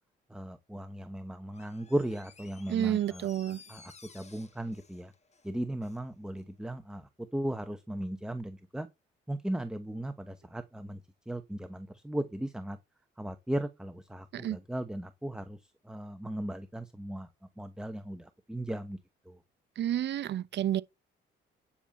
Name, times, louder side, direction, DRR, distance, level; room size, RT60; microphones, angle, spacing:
voice 1, 0.3-3.3 3.7-5.1 5.4-8.9 9.3-12.8 13.2-17.3 17.6-19.0 19.2-19.4, right 1 dB, 5° right, 1.0 m, -37 dB
Door, 1.5-6.1 6.4-6.5, left 4 dB, 35° left, 1.5 m, -56 dB
voice 2, 2.7-3.6 14.3-14.6 19.8-20.8, right 11 dB, 60° right, 0.7 m, -30 dB
10.0 x 6.9 x 4.2 m
cardioid pair, 90°, 20 cm